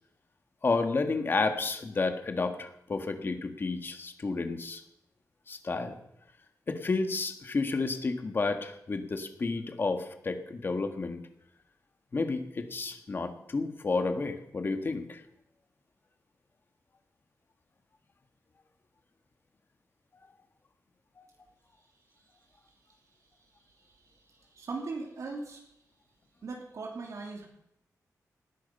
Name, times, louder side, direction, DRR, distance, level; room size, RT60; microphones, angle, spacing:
voice 1, 0.6-4.8 5.5-6.0 6.7-11.2 12.1-15.2 21.2-21.3, left 3 dB, 35° left, 7 dB, 1.7 m, -31 dB
voice 2, 23.8-25.6 26.4-27.5, right 3 dB, 60° right, 0 dB, 3.1 m, -40 dB
18.5 x 12.5 x 5.5 m, 0.82 s
wide cardioid pair, 145°, 6 cm